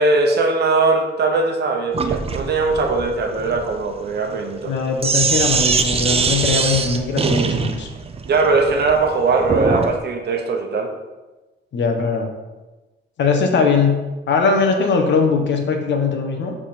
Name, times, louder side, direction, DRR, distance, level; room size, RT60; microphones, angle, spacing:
voice 1, 0.0-4.7 8.3-10.9, right 3 dB, 55° right, 3 dB, 0.9 m, -20 dB
Sink (filling or washing), 1.9-10.0, right 5 dB, 30° right, 0.6 m, -22 dB
voice 2, 4.6-7.9 11.7-12.3 13.2-14.0 14.3-16.5, left 4 dB, 65° left, 4 dB, 1.1 m, -20 dB
7.1 x 3.8 x 4.4 m, 1.1 s
cardioid pair, 90°, 20 cm